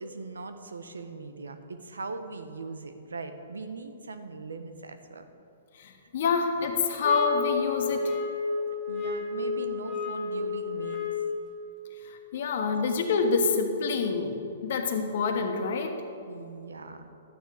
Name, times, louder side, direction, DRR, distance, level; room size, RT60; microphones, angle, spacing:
voice 1, 0.0-5.2 8.9-11.2 16.2-17.0, right 3 dB, 90° right, 8 dB, 1.0 m, -40 dB
voice 2, 5.8-8.1 12.0-15.9, left 5 dB, 60° left, 4 dB, 1.5 m, -27 dB
sound 1, 7.0-11.4, left 4 dB, 5° left, 1.7 m, -31 dB
12.0 x 9.4 x 5.0 m, 2.8 s
hypercardioid pair, 130°, 0 cm